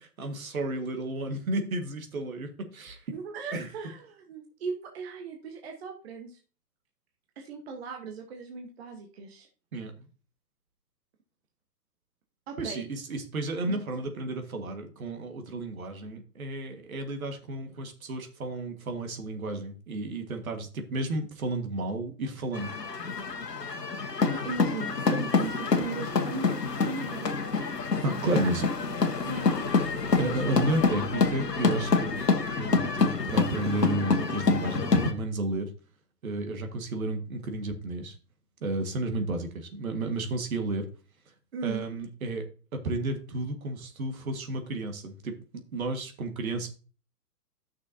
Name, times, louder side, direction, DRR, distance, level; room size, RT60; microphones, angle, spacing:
voice 1, 0.0-3.1 3.5-3.9 9.7-10.1 12.6-22.7 28.0-28.7 29.8-32.2 32.5-35.7 36.2-38.2 38.6-40.9 41.3-41.4 41.6-46.7, right 2 dB, 60° right, 5 dB, 1.8 m, -32 dB
voice 2, 3.1-6.4 7.4-9.5 12.5-12.8 13.7-13.8 24.3-27.4 28.2-28.5 29.0-29.7 41.5-41.8, right 5 dB, 40° right, 2 dB, 1.3 m, -38 dB
sound 1, 22.5-35.1, left 4 dB, 85° left, 1.3 m, -27 dB
12.0 x 6.2 x 2.7 m, 0.37 s
figure-of-eight pair, 130°, 47 cm